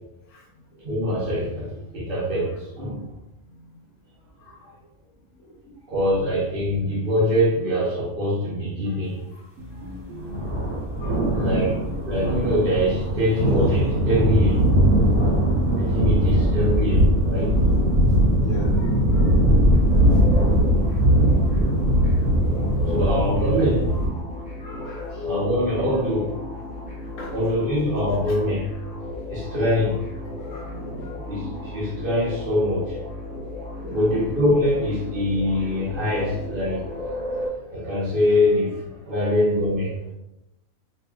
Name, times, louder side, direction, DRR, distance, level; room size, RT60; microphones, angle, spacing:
voice 1, 0.8-3.0 5.9-9.2 11.4-14.6 15.7-17.6 22.9-23.9 25.2-26.3 27.3-28.7 29.3-30.0 31.3-33.0 33.9-36.8 37.7-38.7 39.1-39.9, left 1 dB, 45° right, -4 dB, 0.9 m, -23 dB
sound 1, 9.6-10.7 11.5-12.7 13.5-14.6 15.5-16.1 16.8-17.4, left 1 dB, 70° right, 1.3 m, -39 dB
sound 2, 10.2-24.1, equal, 20° right, 1.3 m, -20 dB
voice 2, 11.0-11.8 18.4-19.5 19.9-20.0 24.6-25.3 27.2-27.3 28.3-28.4 30.4-31.3 33.8-34.0 36.4-36.5 39.1-39.4, left 1 dB, 65° left, -4 dB, 1.0 m, -42 dB
sound 3, 19.7-37.5, left 2 dB, 5° left, 0.9 m, -34 dB
4.4 x 2.9 x 2.3 m, 0.92 s
omnidirectional pair, 1.4 m